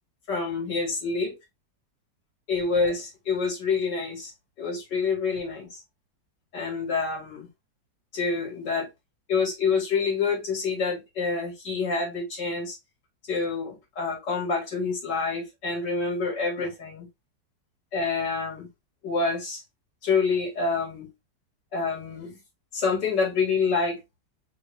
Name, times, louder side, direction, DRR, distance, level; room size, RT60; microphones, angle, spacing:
voice 1, 0.3-1.3 2.5-4.3 4.6-5.8 6.5-7.5 8.1-8.9 9.3-12.8 13.3-17.1 17.9-18.7 19.0-19.6 20.0-21.1 21.7-22.4 22.7-24.0, left 4 dB, 85° left, 2.6 m, -27 dB
4.3 x 3.1 x 3.2 m
omnidirectional pair, 1.9 m